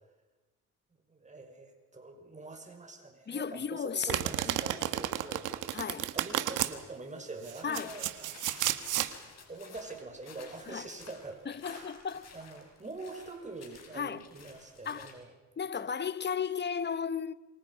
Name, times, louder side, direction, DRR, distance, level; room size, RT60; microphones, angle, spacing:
voice 1, 1.1-5.5 6.1-8.4 9.5-11.9 12.3-15.3, right 3 dB, 25° right, 6.0 m, -45 dB
voice 2, 3.3-4.6 5.7-6.1 7.6-7.9 10.7-10.9 11.5-12.3 13.9-14.2 14.8-15.1 15.6-17.3, left 6 dB, 35° left, 1.1 m, -35 dB
Domestic sounds home sounds, 4.1-6.7 7.5-9.1, right 13 dB, 85° right, 1.6 m, -32 dB
sound 1, 7.4-15.1, left 5 dB, 60° left, 6.5 m, -53 dB
28.0 x 25.5 x 5.7 m
cardioid pair, 90°, 30 cm